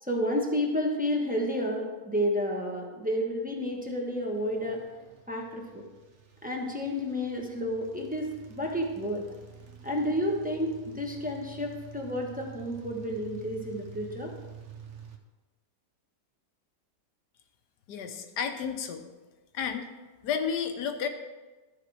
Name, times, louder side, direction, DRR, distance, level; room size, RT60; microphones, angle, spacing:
voice 1, 0.0-4.8 5.3-5.8 6.4-9.2 9.8-14.3, equal, 5° right, -1 dB, 1.0 m, -31 dB
sound 1, 3.2-15.2, right 6 dB, 55° right, 1.0 m, -49 dB
voice 2, 17.9-19.1 19.5-19.9 20.2-21.1, left 7 dB, 75° left, 7 dB, 1.4 m, -31 dB
13.0 x 4.8 x 4.8 m, 1.2 s
omnidirectional pair, 1.8 m